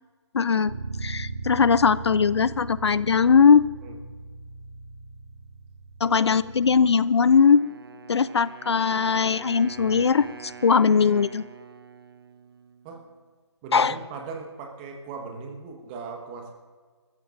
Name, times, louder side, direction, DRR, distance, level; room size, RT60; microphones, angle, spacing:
voice 1, 0.3-0.7 1.0-3.7 6.0-7.6 8.1-11.4 13.7-13.9, left 6 dB, 65° left, 18 dB, 0.4 m, -20 dB
Bass guitar, 0.7-6.9, right 3 dB, 80° right, 2.7 m, -38 dB
voice 2, 6.0-6.3 12.8-13.0 13.6-16.5, right 5 dB, 20° right, 3 dB, 1.4 m, -38 dB
Wind instrument woodwind instrument, 7.3-13.2, right 6 dB, 55° right, 0.8 m, -45 dB
28.5 x 14.0 x 2.6 m, 1.5 s
figure-of-eight pair, 150°, 15 cm